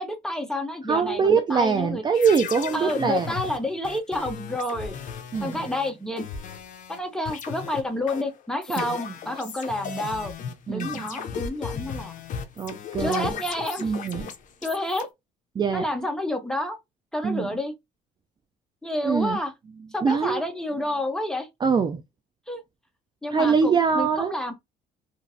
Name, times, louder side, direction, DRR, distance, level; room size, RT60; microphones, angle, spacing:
voice 1, 0.0-2.0 2.7-5.0 5.4-6.3 6.9-10.3 10.7-12.1 13.0-13.9 14.6-15.1 15.7-16.8 17.1-17.7 18.8-19.5 19.9-21.5 22.5-22.6 23.2-24.5, left 1 dB, 5° left, 0.8 m, -29 dB
voice 2, 0.9-3.3 5.3-5.6 8.8-8.9 10.7-11.2 12.6-13.4 13.8-14.3 15.6-15.8 17.2-17.5 19.0-19.4 20.0-20.4 21.6-22.0 23.3-24.4, right 5 dB, 25° right, 0.4 m, -23 dB
sound 1, 2.1-7.0 7.3-15.0, left 7 dB, 50° left, 0.6 m, -36 dB
2.9 x 2.5 x 2.6 m
cardioid pair, 110°, 17 cm